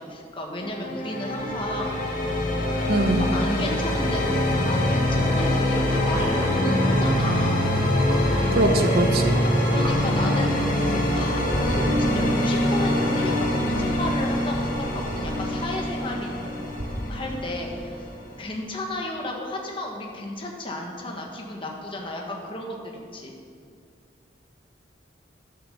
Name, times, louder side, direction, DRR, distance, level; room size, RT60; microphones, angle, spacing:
voice 1, 0.0-2.0 2.9-7.7 9.3-16.5 17.1-18.0 18.4-23.3, left 1 dB, 25° left, 0 dB, 1.3 m, -33 dB
sound 1, 0.6-18.4, left 1 dB, 45° left, 1.9 m, -24 dB
voice 2, 2.9-3.3 8.5-9.4, right 2 dB, 55° right, 6 dB, 0.9 m, -22 dB
sound 2, 6.1-6.4 8.0-8.2 9.3-9.4 9.8-10.0 10.9-11.1 11.5-17.2 18.8-18.9, equal, 70° right, 2.2 m, -37 dB
11.0 x 7.1 x 6.6 m, 2.3 s
head